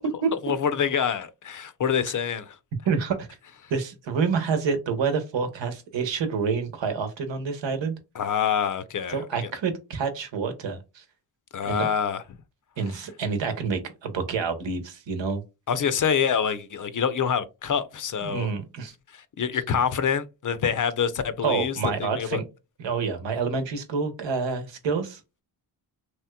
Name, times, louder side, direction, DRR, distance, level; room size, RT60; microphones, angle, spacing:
voice 1, 0.4-2.6 8.1-9.2 11.5-12.2 15.7-18.5 19.1-22.4, left 7 dB, 45° left, 0.6 m, -26 dB
voice 2, 2.9-3.3 3.7-7.9 9.1-11.0 11.6-11.9 12.8-15.4 18.2-18.9 21.4-22.4 22.8-25.2, right 5 dB, 75° right, 1.0 m, -28 dB
3.2 x 2.9 x 2.2 m
cardioid pair, 55°, 45 cm